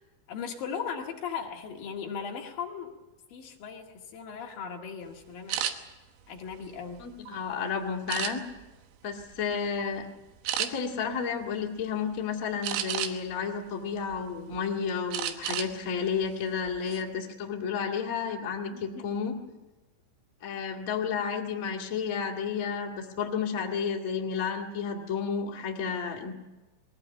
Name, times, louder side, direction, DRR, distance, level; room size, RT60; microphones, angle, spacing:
voice 1, 0.3-2.9 3.3-5.7 6.3-7.0 18.7-19.1, left 6 dB, 55° left, 0 dB, 3.1 m, -38 dB
sound 1, 5.5-5.7 6.4-7.4 8.1-8.7 9.2-9.4 9.8-10.0 10.5-10.7 12.6-13.3 13.9-14.6 15.1-15.7 16.1-16.3 16.7-17.0, right 11 dB, 85° right, 3.9 m, -32 dB
voice 2, 7.0-8.4 9.0-10.1 10.6-19.4 20.4-26.3, left 6 dB, 80° left, 0 dB, 0.7 m, -31 dB
21.5 x 17.0 x 9.1 m, 1.1 s
omnidirectional pair, 5.8 m